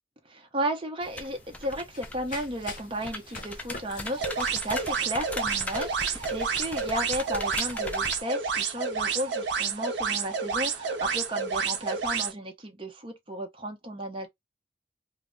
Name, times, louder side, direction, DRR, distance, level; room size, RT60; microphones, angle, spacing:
voice 1, 0.2-14.3, equal, 30° right, 0.6 m, -34 dB
sound 1, 1.0-8.2, left 2 dB, 10° left, 0.3 m, -39 dB
Run, 1.3-6.9, left 3 dB, 50° left, 0.7 m, -48 dB
sound 2, 4.2-12.3, right 5 dB, 80° right, 0.5 m, -30 dB
2.2 x 2.0 x 3.6 m
head